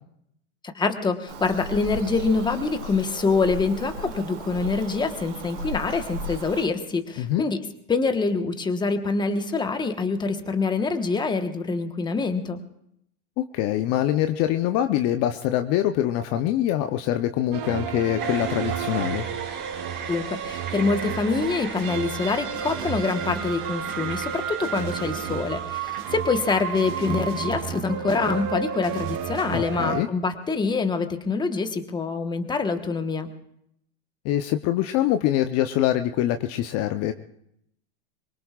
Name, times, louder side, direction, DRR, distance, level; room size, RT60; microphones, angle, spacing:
voice 1, 0.7-7.6 7.9-12.6 20.1-33.3, left 4 dB, 10° left, 7 dB, 1.2 m, -25 dB
Bird vocalization bird call bird song, 1.3-6.7, equal, 70° right, 2.6 m, -35 dB
voice 2, 13.4-19.3 29.5-30.1 34.2-37.1, left 12 dB, 40° left, 8 dB, 0.8 m, -24 dB
sound 1, 17.5-30.0, right 8 dB, 55° right, 1.4 m, -31 dB
sound 2, 18.2-27.8, right 5 dB, 30° right, 3.4 m, -39 dB
24.5 x 22.0 x 2.4 m, 0.74 s
supercardioid pair, 125°, 37 cm